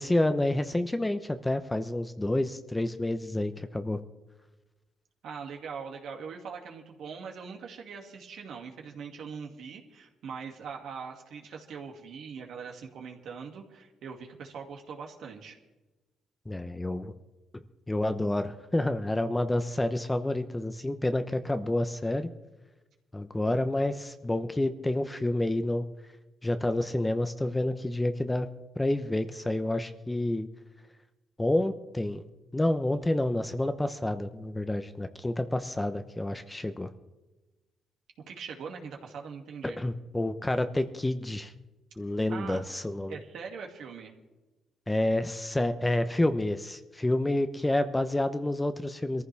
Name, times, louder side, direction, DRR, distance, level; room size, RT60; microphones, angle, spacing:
voice 1, 0.0-4.0 16.5-17.1 17.9-22.3 23.1-25.8 26.4-28.5 28.8-30.5 31.4-32.2 32.5-36.9 39.6-41.5 42.0-43.2 44.9-49.2, left 1 dB, 15° left, 9 dB, 0.9 m, -29 dB
voice 2, 5.2-15.6 38.3-39.8 42.3-42.6 43.1-44.2, right 6 dB, 70° right, 1 dB, 2.4 m, -42 dB
22.5 x 14.5 x 3.5 m, 1.1 s
cardioid pair, 90°, 0 cm